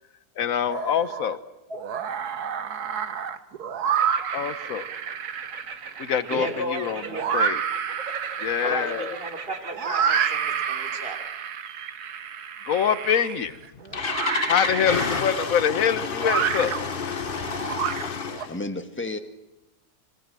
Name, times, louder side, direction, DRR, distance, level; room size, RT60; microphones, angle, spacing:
voice 1, 0.4-1.4 4.3-4.9 6.0-7.0 7.3-7.6 8.4-9.2 12.7-13.5 14.5-16.9, left 8 dB, 60° left, 13 dB, 1.5 m, -25 dB
sound 1, 0.7-1.4 1.7-18.5, right 8 dB, 85° right, 1.7 m, -29 dB
sound 2, 3.9-11.1, right 5 dB, 60° right, 1.9 m, -40 dB
voice 2, 6.3-7.3 8.6-11.2, right 1 dB, 35° right, 5 dB, 3.7 m, -33 dB
Engine starting, 13.4-18.6, left 6 dB, 40° left, 1.1 m, -30 dB
voice 3, 18.4-19.2, left 2 dB, 10° left, 7 dB, 1.6 m, -34 dB
25.0 x 23.0 x 7.7 m, 0.96 s
omnidirectional pair, 1.6 m